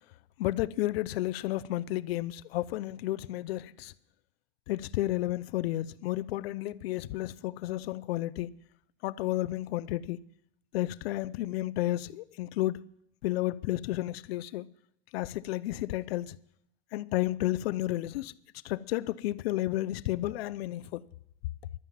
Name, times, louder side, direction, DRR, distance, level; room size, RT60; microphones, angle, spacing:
voice 1, 0.4-3.9 4.7-8.5 9.0-10.2 10.7-12.8 13.2-14.7 15.1-16.4 16.9-18.3 18.6-21.0, left 16 dB, 75° left, 0.6 m, -32 dB
12.0 x 7.1 x 9.2 m
supercardioid pair, 120°, 30 cm